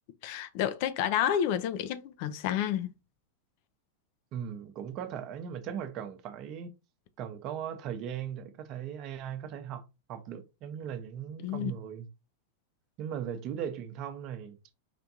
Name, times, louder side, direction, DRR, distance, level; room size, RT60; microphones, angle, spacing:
voice 1, 0.2-2.9 11.4-11.7, left 10 dB, 45° left, 0.5 m, -30 dB
voice 2, 4.3-6.7 7.2-9.8 10.1-12.1 13.0-14.6, right 9 dB, 40° right, 0.8 m, -38 dB
5.1 x 3.4 x 2.7 m
figure-of-eight pair, 90°, 0 cm